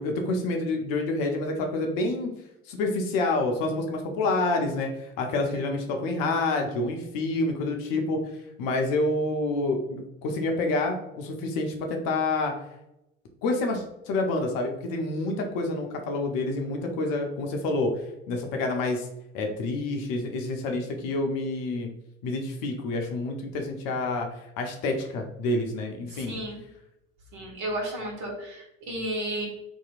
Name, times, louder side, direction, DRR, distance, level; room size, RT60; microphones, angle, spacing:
voice 1, 0.0-2.3 2.7-12.5 13.4-17.9 18.3-19.1 19.3-21.9 22.2-26.4, left 2 dB, 50° left, 3 dB, 0.6 m, -28 dB
voice 2, 26.1-26.6 27.3-29.5, right 1 dB, 45° right, -1 dB, 1.1 m, -33 dB
2.8 x 2.6 x 2.4 m, 0.87 s
figure-of-eight pair, 70°, 42 cm